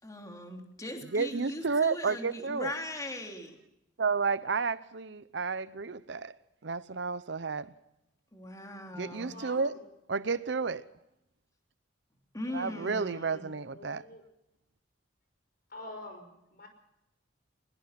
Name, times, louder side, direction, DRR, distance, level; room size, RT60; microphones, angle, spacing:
voice 1, 0.0-3.6 8.3-9.4 12.3-13.5, left 1 dB, 20° left, 3.0 m, -40 dB
voice 2, 1.1-2.7 4.0-6.3 6.6-7.7 9.0-9.7 10.1-10.8 12.5-14.0, right 4 dB, 65° right, 0.7 m, -31 dB
voice 3, 9.3-9.8 13.0-14.2 15.7-16.7, left 1 dB, 50° left, 5.6 m, -47 dB
21.5 x 21.5 x 5.9 m
head